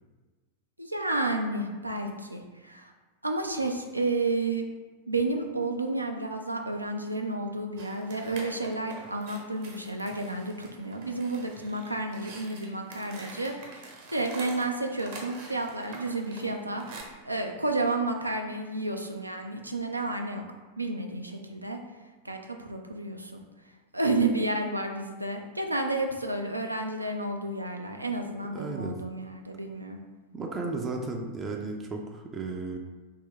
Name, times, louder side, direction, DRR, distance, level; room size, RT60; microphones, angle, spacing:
voice 1, 0.8-2.9 3.2-4.7 5.1-16.9 17.2-20.4 20.8-21.8 22.2-23.4 23.9-30.0, right 2 dB, 85° right, 4 dB, 0.4 m, -31 dB
sound 1, 7.8-17.0, right 3 dB, 50° right, 0.8 m, -46 dB
voice 2, 28.5-29.0 30.3-32.8, right 3 dB, 20° right, 1 dB, 0.4 m, -34 dB
3.6 x 2.8 x 3.3 m, 1.3 s
figure-of-eight pair, 90°, 0 cm